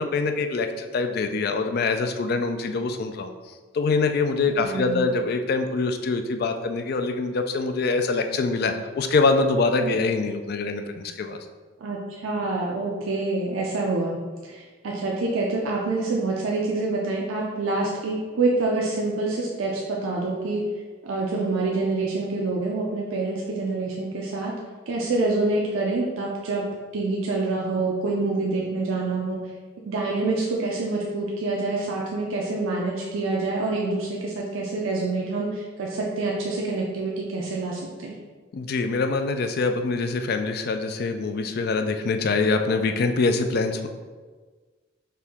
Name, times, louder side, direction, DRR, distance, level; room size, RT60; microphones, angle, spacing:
voice 1, 0.0-11.4 38.5-43.9, left 3 dB, 50° left, 7 dB, 0.3 m, -24 dB
voice 2, 4.5-5.0 9.8-10.0 11.8-20.6 21.0-24.5 24.9-26.6 26.9-29.5 29.9-38.2, right 3 dB, 85° right, -2 dB, 0.5 m, -26 dB
4.4 x 2.6 x 3.5 m, 1.4 s
head